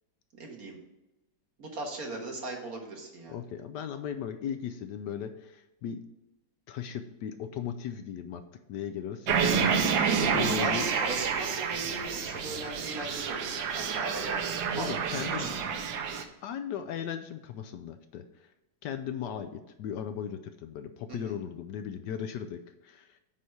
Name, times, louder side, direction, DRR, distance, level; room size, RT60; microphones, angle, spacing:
voice 1, 0.3-0.8 1.6-3.4 10.1-14.4 14.8-15.8 21.1-21.4, right 2 dB, 50° right, 0 dB, 2.0 m, -39 dB
voice 2, 3.3-6.0 6.7-8.4 8.7-9.5 10.3-10.9 14.7-15.5 16.1-18.5 18.8-23.2, left 8 dB, 75° left, 9 dB, 1.1 m, -37 dB
sound 1, 9.3-16.2, right 6 dB, 85° right, 1.5 m, -29 dB
9.3 x 4.1 x 6.5 m, 0.96 s
omnidirectional pair, 2.0 m